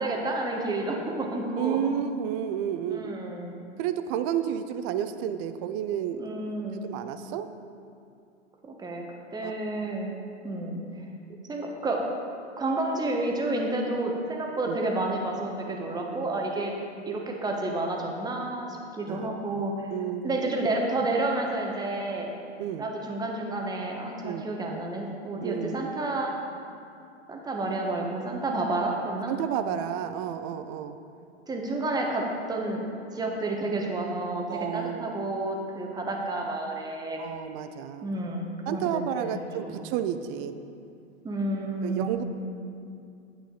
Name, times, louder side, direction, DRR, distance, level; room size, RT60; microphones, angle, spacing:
voice 1, 0.0-1.9 2.9-3.5 6.2-6.8 8.6-9.0 9.3-10.1 10.4-10.8 11.5-12.0 12.6-16.7 17.1-19.9 20.2-22.3 22.8-26.3 27.3-29.3 31.5-37.2 38.0-39.9 41.2-42.1, right 2 dB, 10° right, 0 dB, 1.2 m, -30 dB
voice 2, 1.6-3.2 3.8-6.3 6.8-7.5 9.4-9.5 14.7-14.8 17.1-17.2 19.1-19.3 19.9-20.5 22.6-22.9 24.2-24.5 25.4-25.9 29.3-31.0 34.5-35.1 37.2-38.1 38.7-40.5 41.8-42.2, right 9 dB, 30° right, 10 dB, 0.4 m, -31 dB
10.0 x 8.1 x 3.8 m, 2.5 s
figure-of-eight pair, 100°, 35 cm